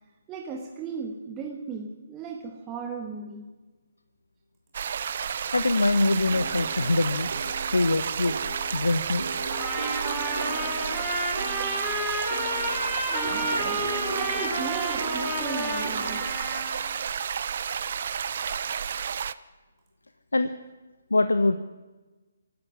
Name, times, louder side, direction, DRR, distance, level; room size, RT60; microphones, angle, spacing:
voice 1, 0.3-3.4 13.1-16.3, right 5 dB, 15° right, 1 dB, 1.7 m, -36 dB
sound 1, 4.7-19.3, right 7 dB, 45° right, 0.7 m, -31 dB
voice 2, 5.5-7.3 7.7-8.4 8.7-9.3 20.3-20.5 21.1-21.5, left 2 dB, 75° left, 11 dB, 1.0 m, -23 dB
sound 2, 5.9-16.2, right 2 dB, 65° right, 4.2 m, -38 dB
Trumpet, 9.5-16.9, equal, ahead, 5.3 m, -31 dB
25.0 x 11.5 x 9.8 m, 1.2 s
figure-of-eight pair, 140°, 0 cm